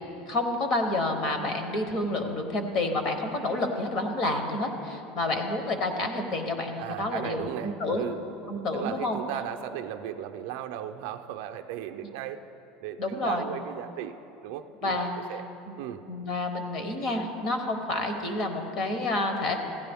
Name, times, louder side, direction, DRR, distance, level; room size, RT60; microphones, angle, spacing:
voice 1, 0.3-8.0 8.5-9.2 13.0-13.4 14.8-15.2 15.7-15.8 16.1-19.6, left 2 dB, 35° left, 6 dB, 0.9 m, -29 dB
voice 2, 6.8-8.2 8.7-12.4 12.8-14.1 14.4-15.5 15.8-16.0, right 11 dB, 60° right, 6 dB, 0.4 m, -36 dB
15.5 x 10.5 x 3.5 m, 2.8 s
cardioid pair, 180°, 0 cm